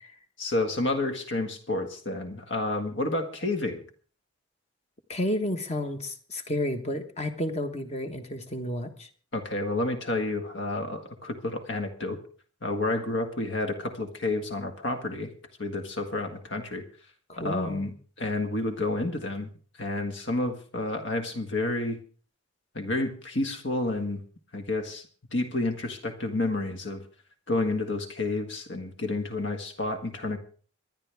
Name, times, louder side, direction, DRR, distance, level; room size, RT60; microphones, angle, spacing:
voice 1, 0.4-3.8 9.3-12.2 12.6-15.3 15.6-16.8 17.4-19.5 19.8-22.0 22.7-24.2 24.5-25.0 25.3-27.0 27.5-30.4, left 2 dB, 60° left, 7 dB, 1.8 m, -30 dB
voice 2, 5.1-9.1 17.3-17.9, left 1 dB, 30° left, 7 dB, 1.3 m, -31 dB
26.0 x 10.5 x 3.5 m, 0.42 s
head